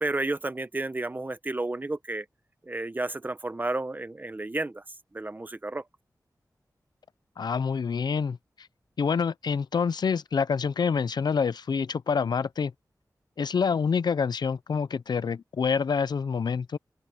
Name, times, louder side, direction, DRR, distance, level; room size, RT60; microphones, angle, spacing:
voice 1, 0.0-2.3 2.7-4.8 5.1-5.8, right 2 dB, 25° right, 1.0 m, -31 dB
voice 2, 7.4-8.7 9.0-12.7 13.4-16.8, left 6 dB, 80° left, 0.5 m, -27 dB
open air
wide cardioid pair, 110°, 7 cm